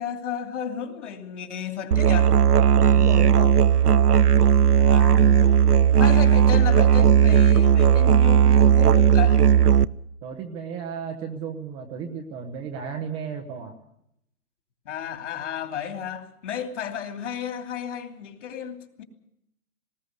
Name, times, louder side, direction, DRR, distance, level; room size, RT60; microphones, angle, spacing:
voice 1, 0.0-2.3 4.8-5.6 5.9-9.5 14.8-19.0, left 8 dB, 50° left, 3.0 m, -33 dB
Musical instrument, 1.9-9.8, right 9 dB, 90° right, 0.8 m, -16 dB
voice 2, 2.9-3.6 10.2-13.7, right 6 dB, 10° right, 0.8 m, -34 dB
19.5 x 18.5 x 8.0 m
hypercardioid pair, 145°, 45 cm